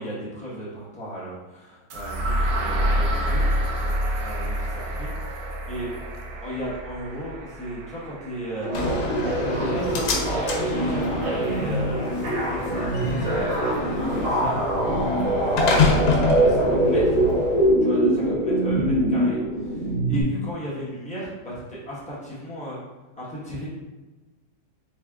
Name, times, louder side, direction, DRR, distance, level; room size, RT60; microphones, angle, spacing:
voice 1, 0.0-3.4 4.2-5.1 5.7-5.9 6.4-9.0 9.4-12.0 12.5-15.7 16.2-17.2 17.8-19.4 19.6-22.8 23.2-23.7, equal, 5° left, -9 dB, 0.5 m, -35 dB
sound 1, 1.9-9.8, equal, 80° right, 0.8 m, -28 dB
sound 2, 8.6-20.2, right 1 dB, 45° right, 1.0 m, -23 dB
Slam, 8.7-17.7, left 3 dB, 90° left, 1.5 m, -27 dB
4.0 x 3.3 x 2.3 m, 1.2 s
omnidirectional pair, 2.2 m